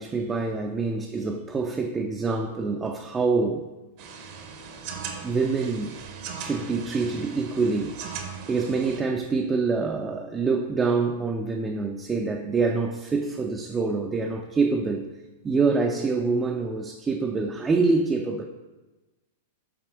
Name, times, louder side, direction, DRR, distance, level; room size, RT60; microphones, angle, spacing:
voice 1, 0.0-3.6 5.2-5.9 6.4-8.0 8.5-15.1 15.4-18.4, right 4 dB, 15° right, 2 dB, 0.4 m, -26 dB
sound 1, 4.0-9.0, right 6 dB, 45° right, 0.7 m, -39 dB
7.2 x 4.1 x 3.4 m, 1.1 s
figure-of-eight pair, 100°, 0 cm